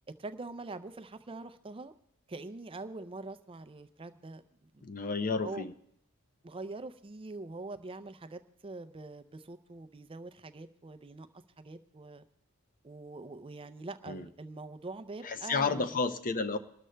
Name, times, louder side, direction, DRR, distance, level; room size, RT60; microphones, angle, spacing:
voice 1, 0.2-1.9 2.3-4.8 5.4-5.7 6.4-11.3 11.6-12.3 12.8-16.0, right 3 dB, 25° right, 11 dB, 0.4 m, -44 dB
voice 2, 4.8-5.7 14.1-14.3 15.2-16.6, left 4 dB, 35° left, 10 dB, 0.5 m, -31 dB
27.5 x 13.0 x 2.2 m, 0.74 s
head